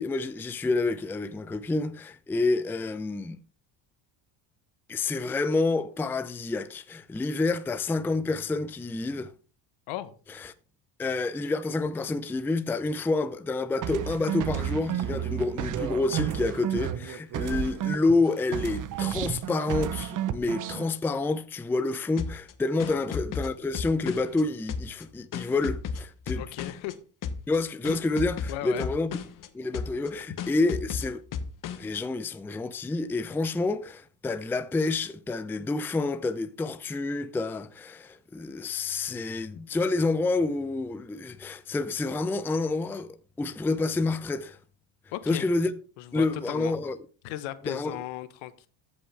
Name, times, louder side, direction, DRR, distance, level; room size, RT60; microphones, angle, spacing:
voice 1, 0.0-3.4 4.9-9.3 10.4-10.5 11.0-26.4 27.5-29.1 29.5-31.2 31.8-44.6 45.3-45.7 46.1-47.0 47.7-48.0, left 3 dB, 5° left, 0.4 m, -28 dB
sound 1, 13.8-18.2 18.5-20.9, right 10 dB, 40° right, 0.7 m, -31 dB
sound 2, 22.2-24.4 24.7-26.9 27.2-27.6 27.8-29.5 29.7-30.1 30.4-32.0, left 6 dB, 40° left, 1.0 m, -34 dB
voice 2, 26.3-26.9 28.5-28.9 45.1-45.4 46.0-46.7 47.2-48.7, left 14 dB, 75° left, 1.1 m, -36 dB
14.0 x 5.5 x 3.3 m
supercardioid pair, 100°, 48 cm